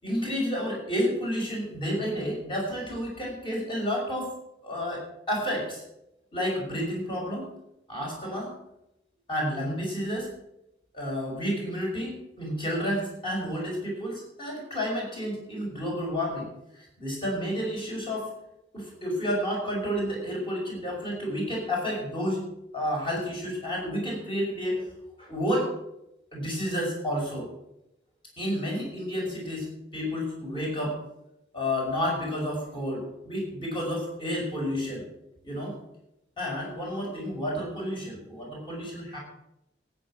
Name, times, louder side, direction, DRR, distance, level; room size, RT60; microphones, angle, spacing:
voice 1, 0.0-4.3 4.6-5.8 6.3-7.5 7.9-8.5 9.3-10.3 10.9-16.5 17.0-18.3 18.7-22.4 22.7-24.9 25.2-25.7 26.3-27.5 28.4-29.7 29.9-31.0 31.5-35.0 35.4-35.8 36.4-39.2, equal, 25° left, -2 dB, 5.7 m, -30 dB
13.5 x 9.5 x 6.3 m, 0.84 s
head